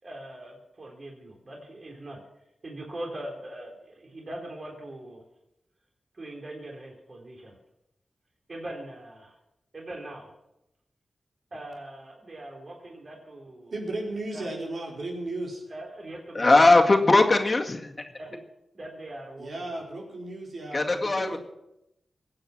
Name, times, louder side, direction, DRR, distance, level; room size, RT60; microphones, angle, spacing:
voice 1, 0.0-2.2 2.6-5.2 6.1-7.6 8.5-9.3 9.7-10.3 11.5-13.7 14.3-14.5 15.7-16.8 18.2-18.4 18.7-19.8, right 1 dB, 45° right, 0 dB, 3.8 m, -41 dB
voice 2, 13.7-15.6 19.4-21.4, right 2 dB, 70° right, -1 dB, 5.2 m, -35 dB
voice 3, 16.3-17.9 20.7-21.4, left 2 dB, 35° left, 2 dB, 2.0 m, -19 dB
22.0 x 8.9 x 6.1 m, 0.86 s
wide cardioid pair, 75°, 0 cm